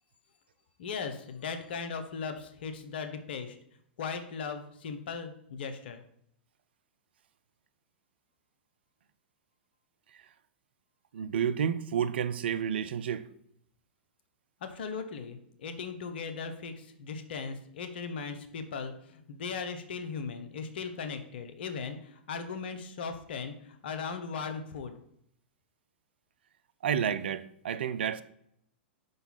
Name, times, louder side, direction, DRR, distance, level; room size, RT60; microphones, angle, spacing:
voice 1, 0.8-3.6 4.0-6.0 14.6-25.0, left 5 dB, 65° left, 0.9 m, -38 dB
voice 2, 11.1-13.3 26.8-28.2, right 8 dB, 70° right, 0.4 m, -30 dB
5.6 x 4.0 x 5.6 m
hypercardioid pair, 105°, 6 cm